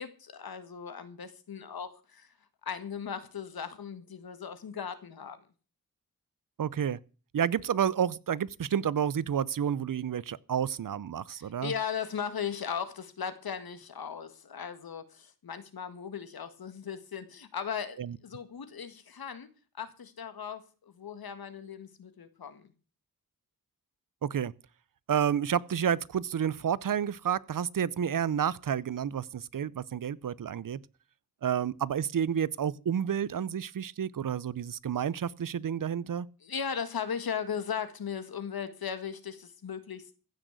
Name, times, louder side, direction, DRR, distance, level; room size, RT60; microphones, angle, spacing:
voice 1, 0.0-2.3 2.7-5.4 11.3-19.5 19.8-22.7 36.4-40.2, left 7 dB, 80° left, 1.9 m, -37 dB
voice 2, 6.6-7.0 7.3-11.7 18.0-18.2 24.2-24.5 25.1-30.8 31.4-36.3, right 8 dB, 65° right, 0.7 m, -30 dB
15.5 x 6.3 x 8.1 m
wide cardioid pair, 80°, 36 cm